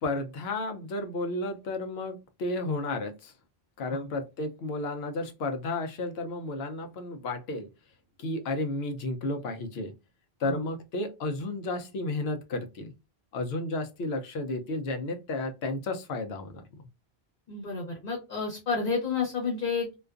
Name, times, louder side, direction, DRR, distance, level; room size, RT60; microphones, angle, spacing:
voice 1, 0.0-3.3 3.8-7.7 8.2-9.9 10.4-12.9 13.3-16.9, left 2 dB, 80° left, 0.8 m, -32 dB
voice 2, 17.5-20.0, left 5 dB, 55° left, 1.1 m, -30 dB
2.4 x 2.3 x 2.3 m
omnidirectional pair, 1.1 m